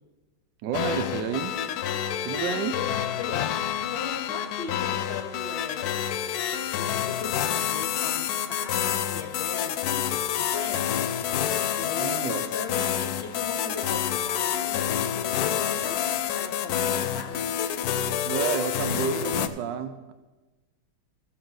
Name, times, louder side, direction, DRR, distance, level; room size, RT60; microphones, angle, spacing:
voice 1, 0.6-1.6 2.2-2.8 12.0-12.4 18.3-20.1, right 7 dB, 85° right, 9 dB, 1.4 m, -30 dB
sound 1, 0.7-19.5, left 10 dB, 70° left, 1.0 m, -28 dB
voice 2, 2.5-3.5 3.9-6.0 6.4-17.6, left 5 dB, 50° left, 4 dB, 0.8 m, -39 dB
15.0 x 7.2 x 3.9 m, 1.2 s
omnidirectional pair, 1.9 m